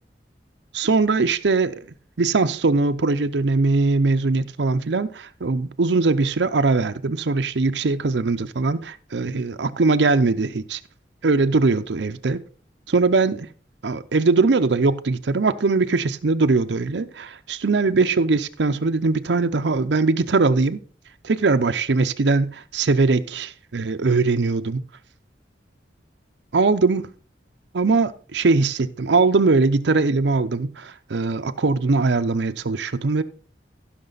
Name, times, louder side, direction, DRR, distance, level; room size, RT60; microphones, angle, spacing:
voice 1, 0.7-1.9 2.2-10.8 11.2-12.4 12.9-13.5 13.8-20.8 21.2-24.8 26.5-27.1 27.7-33.2, right 3 dB, 80° right, 0.6 m, -21 dB
15.0 x 6.0 x 3.9 m
head